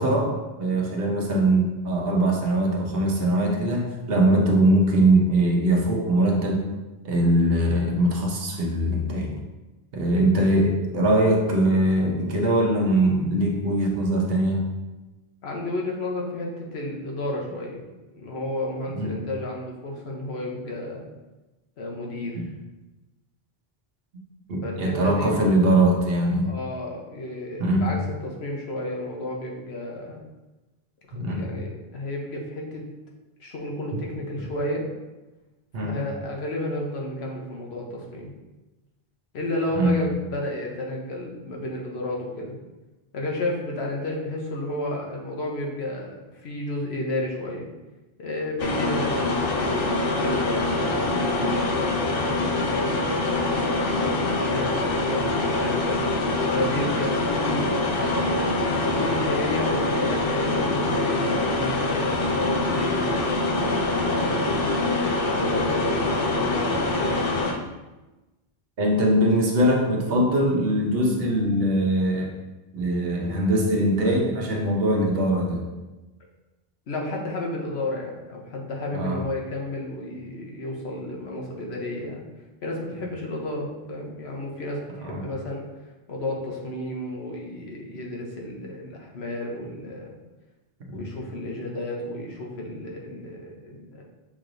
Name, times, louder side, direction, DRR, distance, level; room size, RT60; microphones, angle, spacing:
voice 1, 0.0-6.7 7.0-9.4 9.9-14.6 18.9-19.1 22.3-22.4 24.5-26.6 27.6-27.9 31.1-31.4 35.7-36.0 39.7-40.0 68.8-72.4 72.7-75.7 78.9-79.2 85.0-85.2 90.9-91.1, right 1 dB, 70° right, 1 dB, 1.0 m, -22 dB
voice 2, 15.4-17.8 18.1-21.0 21.8-22.4 24.6-25.3 26.4-30.2 31.1-32.8 33.4-34.9 35.8-38.3 39.3-42.5 43.1-47.7 48.2-53.1 54.0-56.0 56.5-58.6 58.8-62.2 62.6-64.8 65.2-67.2 76.9-82.2 82.6-85.7 86.1-90.2 90.9-94.0, left 1 dB, 80° left, -1 dB, 1.1 m, -32 dB
sound 1, 48.6-67.5, left 2 dB, 65° left, 0.8 m, -24 dB
6.1 x 3.1 x 2.5 m, 1.1 s
omnidirectional pair, 1.1 m